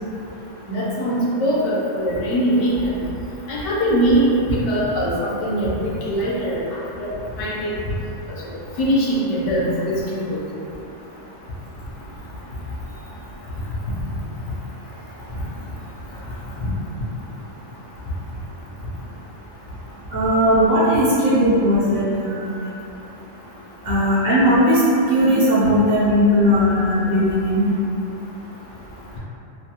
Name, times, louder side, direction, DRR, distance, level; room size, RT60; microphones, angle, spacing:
voice 1, 0.7-2.9 3.5-4.2 4.5-5.1 5.4-6.6 7.0-7.1 7.4-7.7 8.8-9.9 10.3-10.4 16.6-16.7, equal, 70° left, -6 dB, 0.9 m, -21 dB
voice 2, 20.1-22.5 23.8-24.8 25.1-27.8, equal, 55° right, -9 dB, 0.8 m, -17 dB
2.6 x 2.2 x 2.7 m, 2.8 s
omnidirectional pair, 1.3 m